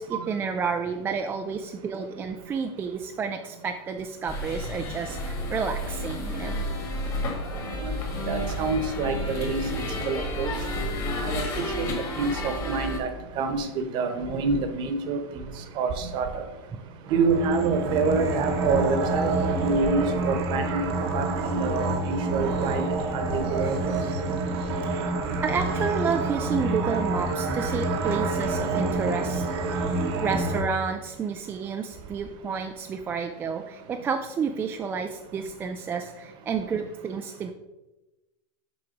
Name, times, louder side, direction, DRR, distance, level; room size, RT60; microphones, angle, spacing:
voice 1, 0.0-6.6 16.7-16.8 25.4-29.4 30.2-37.5, right 6 dB, 15° right, 5 dB, 0.3 m, -30 dB
sound 1, 4.3-13.0, left 1 dB, 25° left, 1.6 m, -31 dB
voice 2, 8.3-10.5 11.2-11.4 11.8-11.9 12.2-13.1 13.4-15.4 15.8-16.4 17.1-20.8 21.1-22.8 23.1-24.0, right 4 dB, 35° right, 7 dB, 1.0 m, -27 dB
sound 2, 17.0-30.6, right 2 dB, 80° right, 1.3 m, -27 dB
6.8 x 4.7 x 5.1 m, 1.1 s
supercardioid pair, 155°, 13 cm